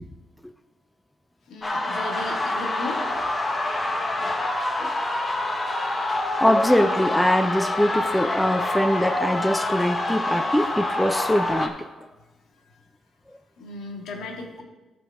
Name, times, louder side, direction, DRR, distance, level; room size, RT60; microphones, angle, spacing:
voice 1, 1.5-3.0 13.6-14.6, left 2 dB, 75° left, 1 dB, 2.0 m, -36 dB
sound 1, 1.6-11.7, left 2 dB, 25° left, 1.2 m, -26 dB
voice 2, 6.4-11.9, equal, 5° left, 9 dB, 0.5 m, -22 dB
14.0 x 5.3 x 4.8 m, 1.1 s
cardioid pair, 90°, 0 cm